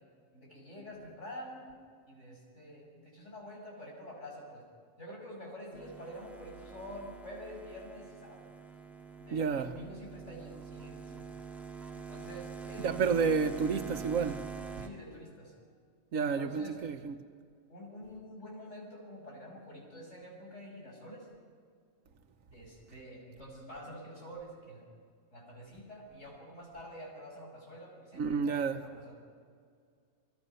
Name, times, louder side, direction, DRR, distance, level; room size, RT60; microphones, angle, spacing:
voice 1, 0.3-1.8 2.1-4.6 5.0-8.5 9.2-11.3 11.9-13.8 14.8-15.5 16.2-16.8 17.7-21.3 22.5-24.9 25.3-29.1, equal, 65° left, 6.4 m, -48 dB
sound 1, 5.7-14.9, right 5 dB, ahead, 1.8 m, -45 dB
voice 2, 9.3-9.7 12.8-14.5 16.1-17.2 28.1-28.8, right 5 dB, 90° right, 1.5 m, -30 dB
29.5 x 19.5 x 5.6 m
omnidirectional pair, 1.3 m